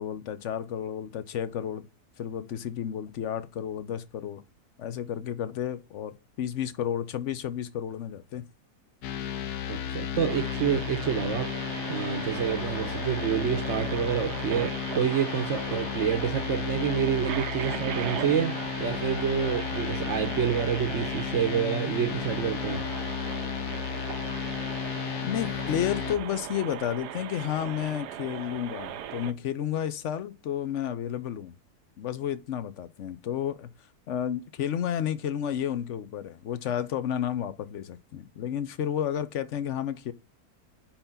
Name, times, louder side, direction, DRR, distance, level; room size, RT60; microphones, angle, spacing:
voice 1, 0.0-1.8 2.2-4.4 4.8-8.4 25.2-31.6 32.0-33.7 34.1-40.1, left 10 dB, 55° left, 0.9 m, -31 dB
sound 1, 9.0-26.2, left 9 dB, 75° left, 1.3 m, -33 dB
voice 2, 9.7-11.5 11.9-22.9, right 8 dB, 55° right, 1.0 m, -28 dB
sound 2, 10.3-29.3, right 10 dB, 85° right, 1.2 m, -38 dB
5.2 x 4.5 x 5.7 m
omnidirectional pair, 1.7 m